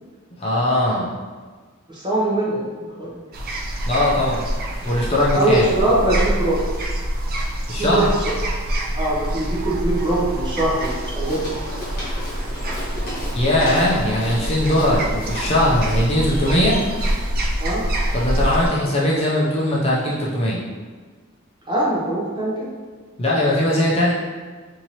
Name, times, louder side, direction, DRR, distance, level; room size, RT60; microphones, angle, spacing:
voice 1, 0.4-1.1 3.9-4.4 4.8-5.7 7.7-8.1 13.3-16.8 18.1-20.6 23.2-24.1, left 1 dB, 30° left, -6 dB, 0.5 m, -20 dB
voice 2, 1.9-2.7 3.0-3.2 5.3-6.6 7.8-8.3 9.0-11.5 17.6-17.9 21.7-22.7, right 1 dB, 20° right, -6 dB, 0.9 m, -22 dB
sound 1, 3.3-18.7, right 1 dB, 45° right, 0.4 m, -26 dB
Walk footsteps, 10.8-17.5, left 1 dB, 45° left, 1.4 m, -34 dB
4.4 x 2.7 x 2.9 m, 1.5 s
head